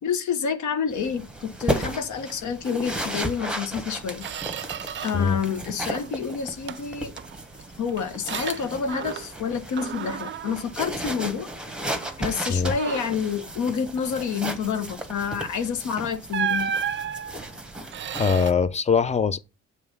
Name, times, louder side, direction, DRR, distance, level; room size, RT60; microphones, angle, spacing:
voice 1, 0.0-4.3 5.0-7.1 7.8-11.5 12.2-16.7, left 6 dB, 75° left, 1.2 m, -28 dB
sound 1, 0.9-18.5, right 1 dB, 5° right, 1.2 m, -35 dB
Squeak, 3.4-3.5 3.9-5.3 5.7-6.2 6.7-9.5 9.8-11.6 12.0-12.2 12.7-13.3 15.4-15.6 16.3-18.5, right 8 dB, 40° right, 0.4 m, -33 dB
voice 2, 18.2-19.4, left 5 dB, 25° left, 0.6 m, -22 dB
7.0 x 3.3 x 5.3 m
cardioid pair, 90°, 30 cm